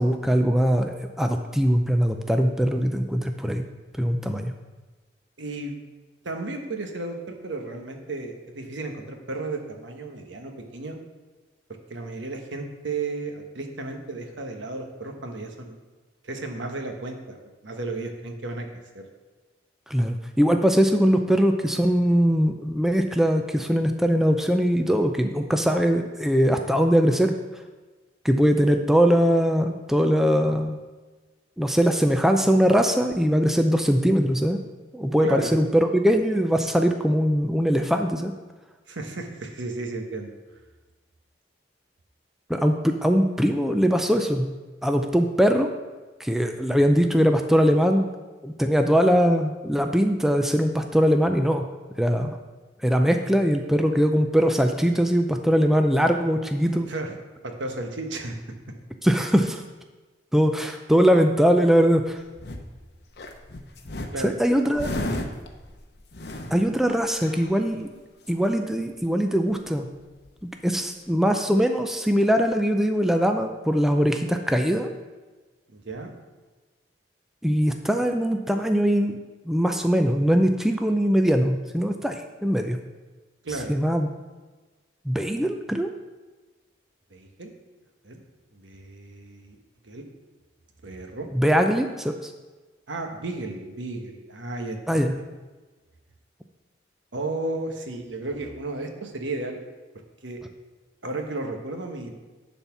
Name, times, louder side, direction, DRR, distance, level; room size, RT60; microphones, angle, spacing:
voice 1, 0.0-3.6 4.0-4.5 19.9-27.3 28.2-30.8 31.6-34.6 34.9-38.3 42.5-44.5 44.8-45.7 46.2-48.1 48.4-51.7 52.0-52.4 52.8-56.9 59.0-59.6 60.3-62.2 64.2-64.9 66.5-67.9 68.3-69.9 70.6-74.9 77.4-79.2 79.5-82.8 83.7-84.1 85.1-85.9 91.3-92.3 94.9-95.1, equal, ahead, 5 dB, 0.4 m, -21 dB
voice 2, 5.4-5.8 6.2-11.0 11.9-15.8 16.2-18.7 18.9-19.0 35.2-35.5 38.9-40.3 56.7-57.1 57.4-58.4 64.1-64.3 75.7-76.1 83.4-83.7 87.1-87.5 88.0-88.2 88.5-89.6 89.8-90.0 90.8-91.3 92.9-95.0 97.1-99.6 100.2-100.4 101.0-102.2, right 2 dB, 90° right, 4 dB, 1.2 m, -33 dB
sound 1, 61.8-62.8 63.1-67.8 68.2-68.3 68.6-69.1 69.3-69.4 69.6-70.4 71.3-71.4, left 1 dB, 60° left, 0.8 m, -35 dB
10.5 x 4.2 x 5.9 m, 1.3 s
head